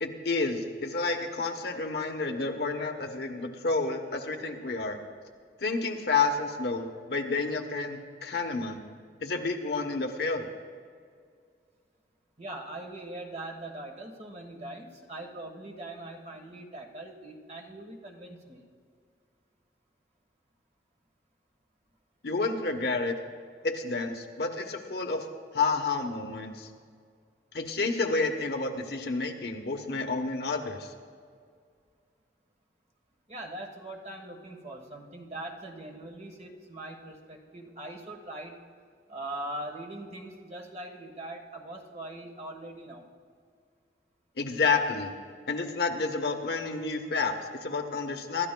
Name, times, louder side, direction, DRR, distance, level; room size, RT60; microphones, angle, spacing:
voice 1, 0.0-5.0 5.6-8.8 9.2-10.5 22.2-23.1 23.6-25.3 25.5-26.7 27.5-30.9 44.4-45.1 45.5-48.5, left 4 dB, 60° left, 4 dB, 1.0 m, -30 dB
voice 2, 12.4-18.6 33.3-38.6 39.1-43.1, right 1 dB, 35° right, 2 dB, 1.3 m, -41 dB
25.0 x 13.0 x 2.2 m, 2.1 s
head